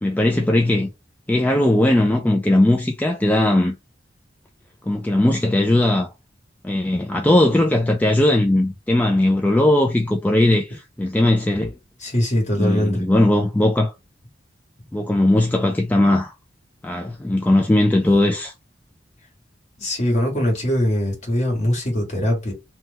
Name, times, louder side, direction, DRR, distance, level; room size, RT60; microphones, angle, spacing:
voice 1, 0.0-0.9 1.3-3.7 4.9-6.1 6.6-11.7 12.6-13.9 14.9-16.3 16.8-18.5, left 1 dB, 10° left, 0.3 m, -18 dB
voice 2, 12.0-13.0 19.8-22.5, left 1 dB, 40° left, 1.5 m, -21 dB
2.9 x 2.1 x 3.4 m
head